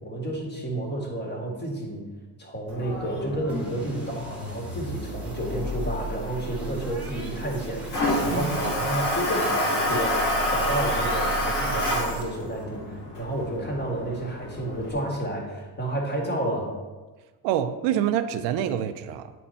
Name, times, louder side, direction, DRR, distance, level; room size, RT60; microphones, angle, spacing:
voice 1, 0.0-2.0 2.4-16.8, right 1 dB, 25° left, -1 dB, 2.0 m, -31 dB
Toilet flush, 2.7-14.9, left 1 dB, 65° left, 2.5 m, -29 dB
sound 1, 3.5-12.6, right 2 dB, 5° right, 1.5 m, -36 dB
voice 2, 8.3-8.7 17.4-19.3, right 10 dB, 85° right, 10 dB, 0.6 m, -26 dB
9.1 x 4.3 x 4.3 m, 1.3 s
cardioid pair, 110°, 41 cm